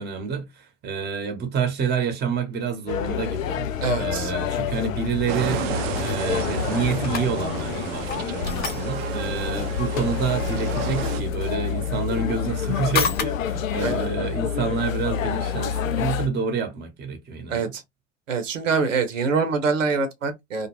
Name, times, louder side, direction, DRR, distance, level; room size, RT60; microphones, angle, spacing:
voice 1, 0.0-3.7 4.0-5.6 6.0-17.7, right 5 dB, 25° right, 0.9 m, -28 dB
sound 1, 2.9-16.3, left 8 dB, 85° left, 0.5 m, -28 dB
voice 2, 3.8-4.3 13.8-14.1 17.5-17.8 18.3-20.7, right 5 dB, 80° right, 0.8 m, -25 dB
sound 2, 5.3-11.2, right 11 dB, 55° right, 0.5 m, -32 dB
sound 3, 6.4-16.1, left 7 dB, 25° left, 0.5 m, -36 dB
2.4 x 2.2 x 2.9 m
hypercardioid pair, 95°, 38 cm